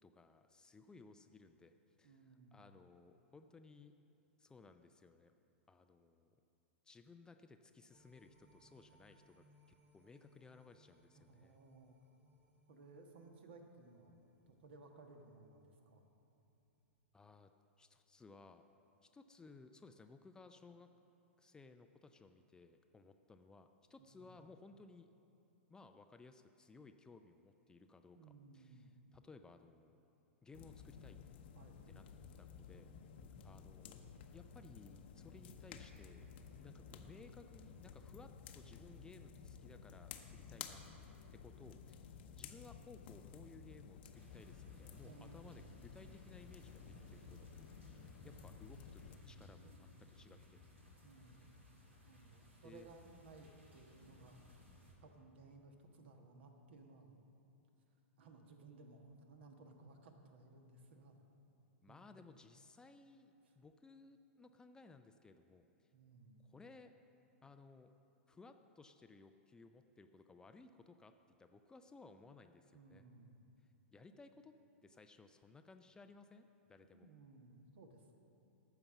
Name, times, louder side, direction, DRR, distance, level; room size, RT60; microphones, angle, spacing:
voice 1, 0.0-1.7 2.0-4.0 4.4-5.3 5.7-6.4 6.8-9.4 9.9-11.6 17.1-17.5 17.8-18.6 19.0-20.9 21.4-25.1 25.7-30.0 30.4-31.2 31.9-32.0 32.4-32.9 33.4-36.3 36.6-40.8 41.3-50.6 51.3-51.4 52.6-52.9 61.8-65.9 66.4-66.9 67.4-67.9 68.3-71.1 71.4-73.0 73.9-74.5 74.8-77.1, left 3 dB, 10° left, 7 dB, 0.4 m, -60 dB
voice 2, 2.0-2.7 11.1-12.0 12.7-14.2 14.5-16.1 24.0-24.3 28.1-28.9 31.6-31.8 36.9-37.0 45.0-45.5 51.0-51.4 52.0-54.5 55.0-57.2 58.2-61.3 61.9-62.1 65.9-66.5 72.7-73.5 76.9-78.1, right 3 dB, 60° right, 4 dB, 1.4 m, -60 dB
sound 1, 7.9-16.3 16.7-16.8, equal, 25° right, 1.6 m, -72 dB
sound 2, 30.5-49.2, left 6 dB, 55° left, 0.8 m, -54 dB
sound 3, 44.1-54.9, left 2 dB, 80° right, 2.5 m, -62 dB
14.0 x 5.9 x 7.0 m, 2.9 s
figure-of-eight pair, 100°, 7 cm